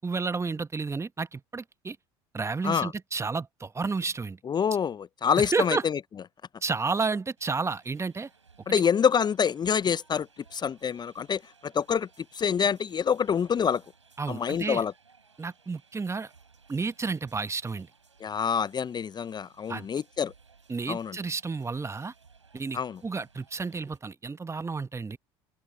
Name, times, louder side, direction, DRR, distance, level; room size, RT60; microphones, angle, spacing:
voice 1, 0.0-2.0 2.3-4.4 5.4-5.9 6.6-8.3 8.7-8.8 14.2-14.8 15.4-16.3 16.7-17.9 19.7-19.9 20.7-22.1 22.5-25.2, right 4 dB, 20° right, 1.2 m, -31 dB
voice 2, 4.4-6.0 8.7-13.8 14.3-14.9 18.2-20.3 20.9-21.2 22.7-23.0, left 7 dB, 30° left, 0.6 m, -26 dB
sound 1, 7.4-24.0, right 5 dB, 90° right, 5.6 m, -61 dB
open air
figure-of-eight pair, 65°, 15 cm